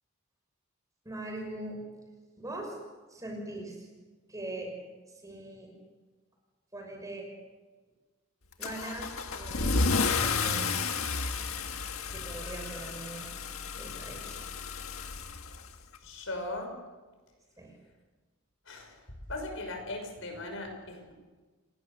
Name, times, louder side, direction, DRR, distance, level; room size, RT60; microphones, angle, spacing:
voice 1, 1.0-1.8 2.4-2.8 3.1-3.9 4.3-4.7 5.2-5.7 6.7-7.3 8.6-9.9 10.2-10.9 12.1-13.3 13.8-14.4 17.6-17.7, right 2 dB, 15° right, 2 dB, 6.3 m, -41 dB
Car / Engine starting / Accelerating revving vroom, 8.6-16.0, left 4 dB, 90° left, 1.7 m, -32 dB
voice 2, 16.0-16.7 18.7-19.0 19.3-21.1, left 2 dB, 70° left, 4 dB, 5.8 m, -38 dB
29.5 x 18.5 x 6.8 m, 1.3 s
head